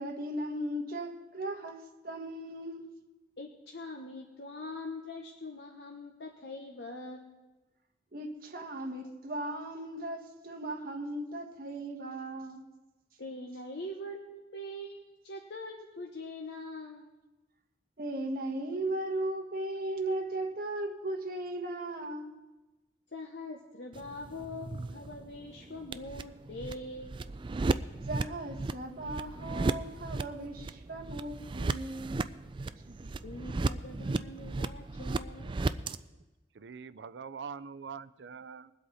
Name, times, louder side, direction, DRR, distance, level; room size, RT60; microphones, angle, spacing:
voice 1, 0.0-3.0 8.1-12.7 18.0-22.4 28.1-32.4 32.9-33.1, right 1 dB, 55° right, 1.4 m, -37 dB
voice 2, 3.4-7.3 13.2-17.1 23.1-27.1 33.2-35.5, left 1 dB, 75° left, 1.1 m, -43 dB
sound 1, 23.9-36.0, right 3 dB, 30° right, 0.3 m, -35 dB
voice 3, 36.5-38.7, right 6 dB, 90° right, 0.5 m, -44 dB
21.0 x 8.0 x 4.1 m
head